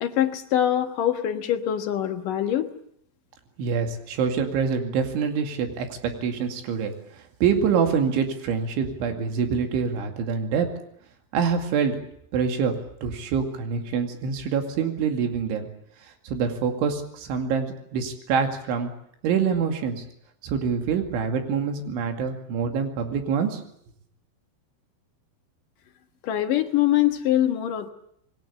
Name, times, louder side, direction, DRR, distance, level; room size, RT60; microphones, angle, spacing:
voice 1, 0.0-2.7 26.2-27.9, left 11 dB, 60° left, 6 dB, 2.4 m, -23 dB
voice 2, 3.6-10.7 11.3-12.0 12.3-12.8 13.0-15.7 16.3-18.9 19.2-20.0 20.4-23.6, right 6 dB, 90° right, 5 dB, 4.8 m, -25 dB
27.5 x 21.5 x 8.3 m, 0.71 s
omnidirectional pair, 5.3 m